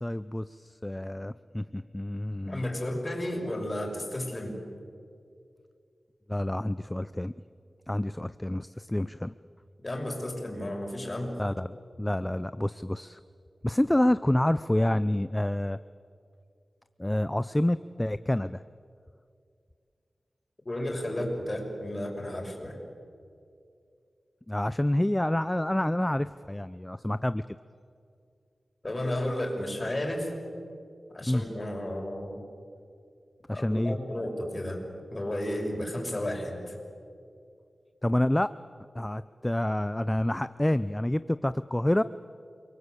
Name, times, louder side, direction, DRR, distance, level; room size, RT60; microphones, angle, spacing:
voice 1, 0.0-2.6 6.3-7.3 7.9-9.3 11.4-13.2 13.6-15.8 17.0-18.6 24.5-27.4 31.3-31.4 33.5-34.0 38.0-38.5 38.9-42.0, left 1 dB, 15° left, 14 dB, 0.6 m, -28 dB
voice 2, 2.5-4.6 9.8-11.3 20.6-22.8 28.8-30.3 31.1-32.4 33.5-34.8 35.1-36.7, left 1 dB, 35° left, 1 dB, 6.7 m, -33 dB
29.0 x 22.5 x 8.3 m, 2.4 s
cardioid pair, 55°, 0 cm